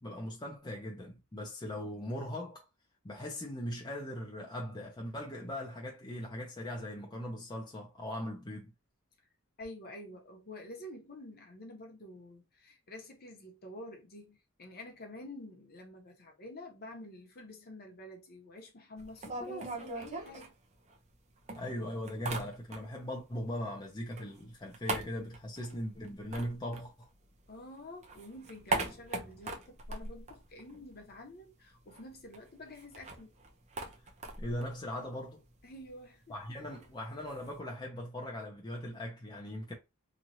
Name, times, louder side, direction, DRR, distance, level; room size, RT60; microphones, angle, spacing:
voice 1, 0.0-2.7 3.0-8.7 21.5-27.1 34.4-35.4 36.3-39.7, left 1 dB, 20° left, 0.6 m, -39 dB
voice 2, 9.6-20.5 27.5-33.3 35.6-36.7, left 1 dB, 45° left, 1.0 m, -48 dB
sound 1, 19.0-21.2 21.5-23.1 23.4-27.5 27.9-31.2 31.4-31.5 31.8-37.6, right 3 dB, 30° right, 0.6 m, -41 dB
3.1 x 2.4 x 2.7 m
head